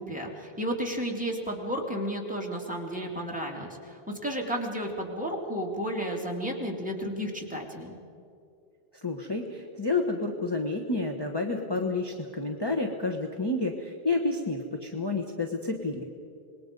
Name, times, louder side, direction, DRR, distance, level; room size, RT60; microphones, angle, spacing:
voice 1, 0.0-8.0, equal, 5° right, -1 dB, 2.7 m, -32 dB
voice 2, 8.9-16.0, left 3 dB, 25° left, 2 dB, 1.3 m, -30 dB
26.5 x 20.5 x 5.3 m, 2.4 s
omnidirectional pair, 1.0 m